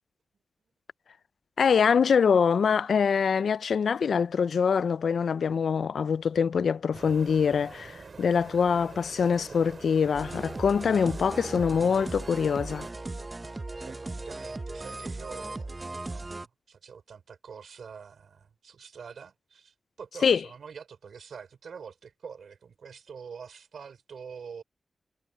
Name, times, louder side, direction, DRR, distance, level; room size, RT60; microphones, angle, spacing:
voice 1, 1.6-12.9 20.2-20.4, left 6 dB, 85° left, 0.3 m, -24 dB
sound 1, 6.9-12.9, right 4 dB, 55° right, 3.7 m, -46 dB
sound 2, 10.1-16.5, right 2 dB, 30° right, 0.7 m, -38 dB
voice 2, 13.9-24.6, right 6 dB, 85° right, 5.2 m, -46 dB
wide cardioid pair, 80°, 0 cm